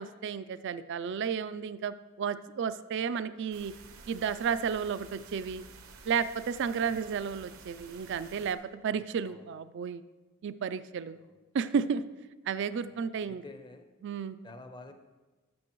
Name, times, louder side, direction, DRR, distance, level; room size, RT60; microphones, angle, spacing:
voice 1, 0.0-3.7 4.1-5.6 6.1-10.0 10.4-11.2 11.5-12.0 12.5-13.4 14.0-14.4, right 6 dB, 60° right, 14 dB, 0.4 m, -32 dB
sound 1, 3.5-8.5, right 4 dB, 80° right, 0.8 m, -52 dB
voice 2, 8.8-9.5 11.1-11.3 12.8-13.9 14.4-14.9, left 2 dB, 20° left, 7 dB, 0.6 m, -50 dB
12.5 x 6.3 x 3.1 m, 1.2 s
head